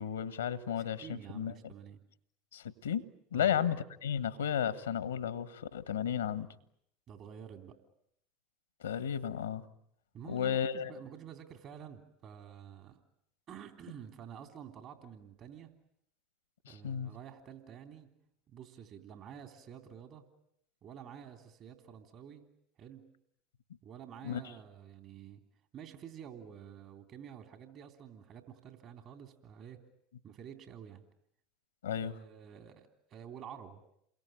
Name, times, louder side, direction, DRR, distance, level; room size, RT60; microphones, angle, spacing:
voice 1, 0.0-1.5 2.5-3.0 3.3-6.5 8.8-9.6 10.3-10.9 16.8-17.1 24.2-24.4 31.8-32.1, left 9 dB, 85° left, 14 dB, 1.4 m, -33 dB
voice 2, 0.8-2.0 3.3-3.6 7.1-7.8 10.1-13.0 13.5-15.7 16.7-18.1 18.5-20.2 20.8-22.5 22.8-23.1 23.8-25.4 25.7-29.8 30.2-31.0 32.0-33.8, right 8 dB, 50° right, 6 dB, 3.4 m, -50 dB
29.0 x 22.5 x 9.1 m, 0.73 s
hypercardioid pair, 75°, 0 cm